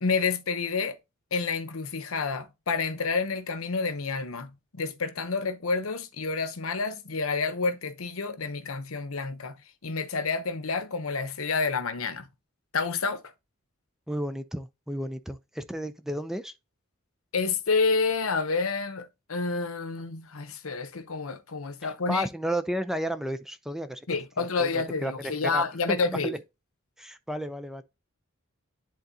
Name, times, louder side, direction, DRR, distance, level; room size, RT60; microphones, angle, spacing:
voice 1, 0.0-1.0 1.3-9.6 9.8-12.3 12.7-13.2 17.3-22.3 24.1-26.3, left 4 dB, 80° left, 0.9 m, -29 dB
voice 2, 14.1-16.5 21.8-24.1 24.4-26.4 27.0-27.8, equal, ahead, 0.5 m, -33 dB
10.5 x 3.8 x 2.8 m
head